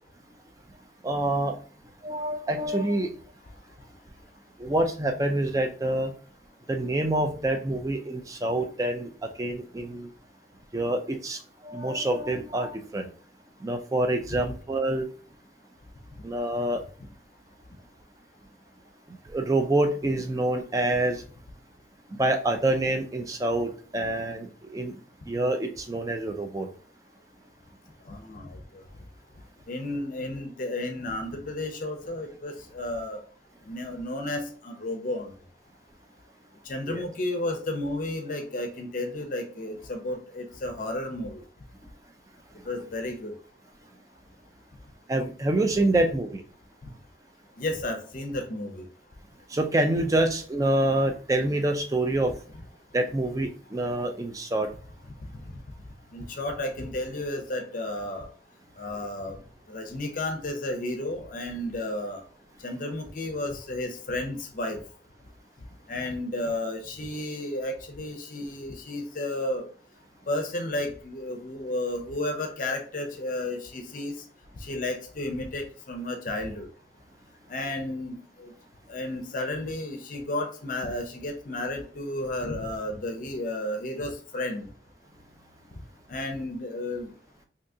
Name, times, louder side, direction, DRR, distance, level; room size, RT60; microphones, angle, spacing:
voice 1, 1.0-1.6 2.0-3.1 4.6-6.1 6.7-10.1 10.7-13.1 13.6-15.1 16.2-16.8 19.3-21.2 22.2-25.0 25.3-26.7 36.9-37.0 45.1-46.4 49.5-52.3 52.9-54.7, right 1 dB, 20° right, 5 dB, 0.4 m, -26 dB
voice 2, 28.1-28.8 29.7-33.2 33.7-35.3 36.7-41.4 42.7-43.3 47.6-48.9 55.3-55.4 56.1-58.3 58.8-59.4 59.7-62.2 62.6-64.8 65.9-69.6 70.3-74.1 74.6-76.7 77.5-78.5 78.9-84.7 86.1-87.1, left 1 dB, 45° left, 5 dB, 0.5 m, -32 dB
3.6 x 2.7 x 2.6 m, 0.42 s
head